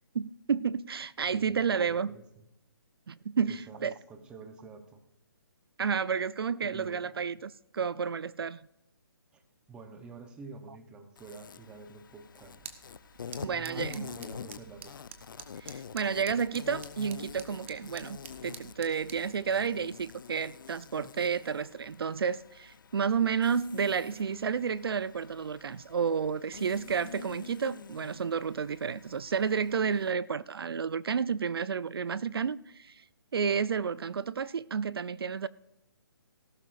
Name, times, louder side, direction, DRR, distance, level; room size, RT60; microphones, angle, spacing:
voice 1, 0.1-2.1 3.1-3.9 5.8-8.6 13.4-14.1 15.6-33.0 33.3-35.5, right 6 dB, 75° right, 0.5 m, -31 dB
voice 2, 1.3-2.5 3.5-5.0 6.6-7.1 9.3-9.4 9.7-12.8 13.4-14.9, right 4 dB, 5° right, 0.8 m, -48 dB
Insect, 11.2-30.1, left 7 dB, 60° left, 0.6 m, -47 dB
sound 1, 12.4-19.3, right 7 dB, 30° right, 1.1 m, -50 dB
18.5 x 12.0 x 2.5 m
hypercardioid pair, 165°, 13 cm